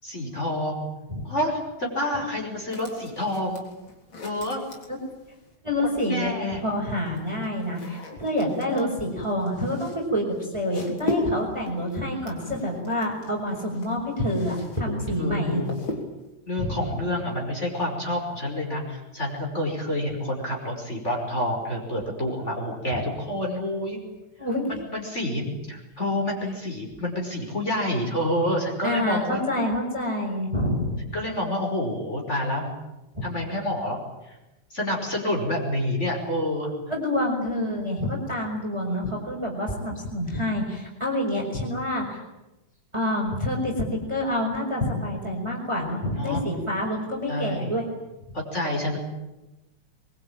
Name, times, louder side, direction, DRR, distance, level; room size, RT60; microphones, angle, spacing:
voice 1, 0.0-0.9 1.2-3.6 4.2-4.6 5.9-6.6 8.7-8.9 12.1-12.4 14.9-15.7 16.5-24.0 24.7-29.4 31.1-32.7 33.2-34.0 34.3-34.4 34.7-36.7 46.1-46.5 47.3-47.7 48.3-49.0, left 1 dB, 20° left, 0 dB, 5.7 m, -28 dB
sound 1, 2.7-5.6 6.6-14.8 15.1-16.3, left 1 dB, 40° left, 4.4 m, -37 dB
voice 2, 5.6-15.7 16.6-16.9 22.9-23.0 24.4-24.7 28.8-31.0 33.1-33.3 36.9-42.2 42.9-47.9, left 1 dB, 10° right, 0 dB, 4.8 m, -27 dB
23.5 x 23.0 x 9.0 m, 1.0 s
omnidirectional pair, 3.3 m